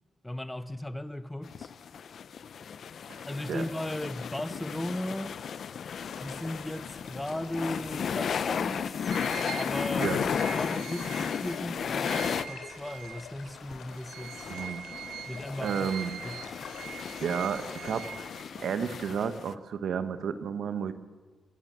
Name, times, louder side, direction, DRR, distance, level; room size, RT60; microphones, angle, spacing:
voice 1, 0.2-1.7 3.2-5.3 6.2-9.1 9.5-10.1 10.5-14.6 15.3-15.9 16.2-16.4, left 1 dB, 10° left, 0.7 m, -36 dB
sound 1, 1.4-12.5 12.8-12.9 13.1-13.2 13.6-19.5, left 7 dB, 60° left, 0.7 m, -34 dB
sound 2, 5.9-18.3, left 6 dB, 90° left, 3.3 m, -48 dB
sound 3, 9.1-13.5 13.9-18.8, right 9 dB, 90° right, 0.8 m, -43 dB
voice 2, 14.5-14.8 15.6-16.1 17.2-18.1 18.6-20.9, right 7 dB, 70° right, 1.4 m, -31 dB
25.5 x 15.5 x 7.0 m
cardioid pair, 115°, 0 cm